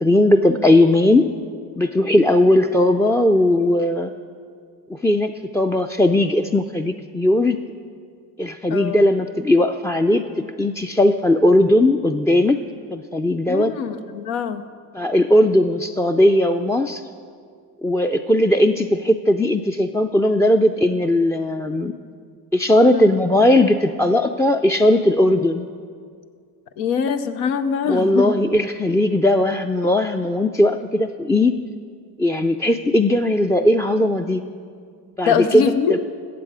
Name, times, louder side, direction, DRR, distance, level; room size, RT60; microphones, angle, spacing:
voice 1, 0.0-1.3 1.8-4.1 4.9-7.6 8.4-12.6 12.9-13.7 14.9-17.0 17.8-21.9 22.5-25.7 27.9-31.5 32.2-34.4 35.2-35.7, left 1 dB, 5° left, 7 dB, 0.3 m, -18 dB
voice 2, 13.5-14.6 22.9-23.2 26.8-28.4 35.3-35.9, left 7 dB, 90° left, 9 dB, 0.7 m, -23 dB
15.0 x 7.5 x 4.9 m, 2.1 s
supercardioid pair, 60°, 42 cm